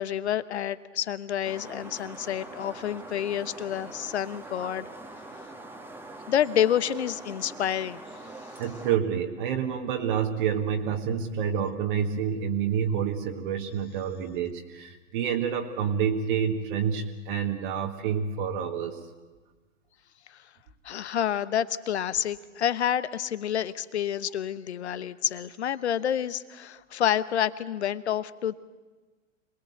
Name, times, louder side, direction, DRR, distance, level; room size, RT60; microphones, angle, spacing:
voice 1, 0.0-4.9 6.3-8.0 20.3-20.4 20.8-28.5, left 10 dB, 55° left, 16 dB, 1.1 m, -28 dB
sound 1, 1.4-9.0, right 2 dB, 5° right, 1.5 m, -43 dB
voice 2, 8.6-19.0, right 7 dB, 40° right, 3 dB, 1.8 m, -28 dB
26.5 x 20.5 x 8.1 m, 1.3 s
figure-of-eight pair, 105°, 39 cm